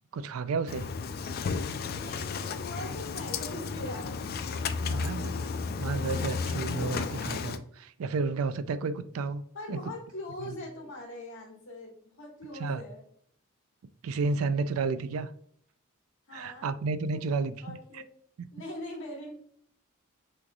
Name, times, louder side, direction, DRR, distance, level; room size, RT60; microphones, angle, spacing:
voice 1, 0.1-0.9 4.8-5.3 5.8-9.4 9.7-9.8 12.6-12.8 14.0-15.3 16.3-18.0 18.4-18.5, right 4 dB, 80° right, 12 dB, 0.4 m, -31 dB
Engine starting, 0.7-7.6, left 5 dB, 45° left, 0.4 m, -33 dB
voice 2, 1.9-5.3 9.5-13.0 16.3-16.7 17.1-18.1 18.5-19.3, left 1 dB, 60° left, 0 dB, 1.5 m, -42 dB
6.0 x 3.2 x 2.3 m, 0.65 s
head